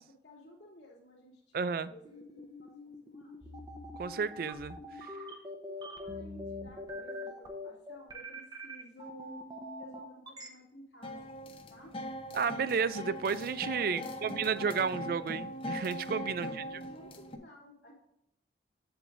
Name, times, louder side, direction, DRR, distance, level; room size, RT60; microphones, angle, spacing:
voice 1, 0.0-2.2 2.6-3.5 5.7-9.4 9.8-11.3 11.7-11.9 13.9-15.5 16.3-17.9, equal, 85° left, 2.5 m, -54 dB
voice 2, 1.5-1.9 4.0-5.1 12.3-16.6, right 6 dB, 50° right, 0.3 m, -32 dB
sound 1, 2.0-10.5, left 1 dB, 20° right, 0.9 m, -43 dB
sound 2, 11.0-17.4, left 1 dB, 30° left, 0.7 m, -41 dB
7.9 x 7.7 x 2.6 m
head